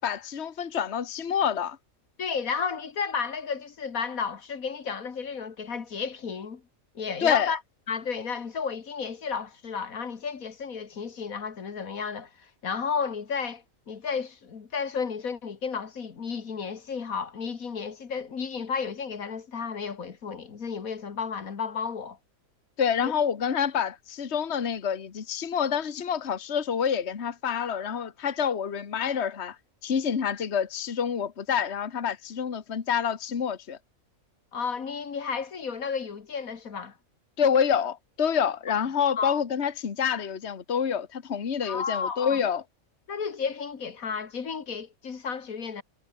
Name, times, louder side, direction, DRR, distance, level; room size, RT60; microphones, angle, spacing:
voice 1, 0.0-1.8 7.2-7.5 22.8-29.6 29.8-33.8 37.4-42.6, left 7 dB, 50° left, 1.6 m, -27 dB
voice 2, 2.2-6.6 7.0-7.6 7.9-22.2 23.0-23.1 34.5-37.0 39.2-39.3 41.7-42.4 43.1-45.8, left 6 dB, 80° left, 2.2 m, -32 dB
omnidirectional pair, 1.4 m